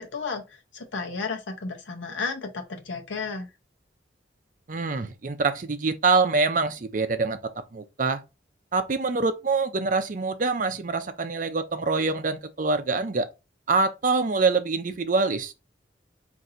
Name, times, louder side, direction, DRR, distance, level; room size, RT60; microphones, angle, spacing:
voice 1, 0.0-3.5, left 4 dB, 85° left, 0.8 m, -33 dB
voice 2, 4.7-8.2 8.7-13.3 13.7-15.5, right 4 dB, 45° right, 0.5 m, -25 dB
3.8 x 2.6 x 4.1 m
head